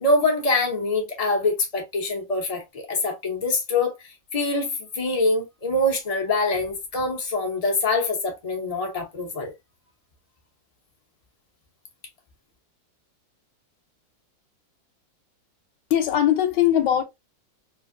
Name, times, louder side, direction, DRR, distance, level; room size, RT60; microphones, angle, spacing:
voice 1, 0.0-3.9 4.3-9.5, left 2 dB, 55° left, 0.4 m, -24 dB
voice 2, 15.9-17.0, left 11 dB, 75° left, 1.2 m, -20 dB
3.2 x 2.5 x 2.5 m
omnidirectional pair, 2.0 m